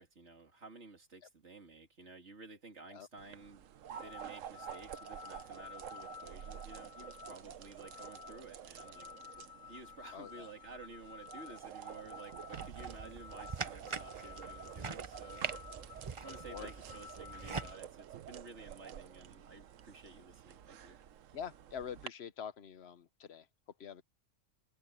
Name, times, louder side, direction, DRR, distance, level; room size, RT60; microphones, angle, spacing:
voice 1, 0.0-9.4 9.7-15.5 16.1-21.0, right 3 dB, 60° right, 3.1 m, -53 dB
sound 1, 3.2-22.1, right 9 dB, 80° right, 1.2 m, -50 dB
sound 2, 3.9-17.8, left 8 dB, 30° left, 1.2 m, -53 dB
voice 2, 10.1-10.5 16.5-16.7 21.3-23.5 23.8-24.0, left 8 dB, 55° left, 1.1 m, -45 dB
sound 3, 12.5-17.7, right 4 dB, 30° right, 0.8 m, -43 dB
open air
omnidirectional pair, 1.3 m